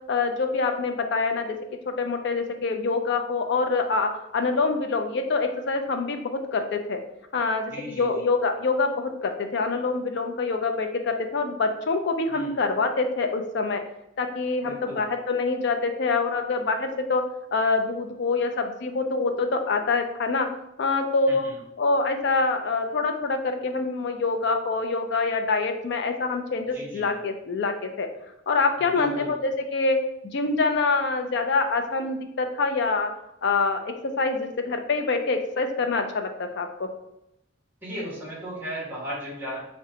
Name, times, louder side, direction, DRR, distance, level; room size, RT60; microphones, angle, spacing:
voice 1, 0.1-1.6 1.9-7.0 7.3-13.8 14.2-17.2 17.5-20.5 20.8-21.5 21.8-28.1 28.5-30.0 30.3-33.1 33.4-36.9, left 3 dB, 65° left, 5 dB, 0.4 m, -25 dB
voice 2, 7.7-8.3 12.3-12.5 14.6-15.0 21.3-21.6 26.7-27.1 28.8-29.3 37.8-39.6, equal, 10° right, -6 dB, 1.1 m, -36 dB
4.9 x 2.2 x 2.8 m, 0.83 s
head